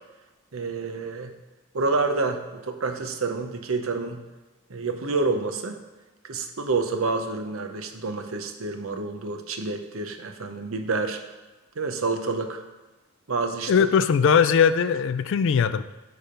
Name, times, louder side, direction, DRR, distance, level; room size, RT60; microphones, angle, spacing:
voice 1, 0.5-1.3 1.7-4.2 4.7-5.8 6.2-11.2 11.8-12.6 13.3-13.7, right 3 dB, 70° right, 7 dB, 0.7 m, -28 dB
voice 2, 13.7-15.8, left 6 dB, 60° left, 13 dB, 0.3 m, -20 dB
8.8 x 3.4 x 5.1 m, 1.2 s
head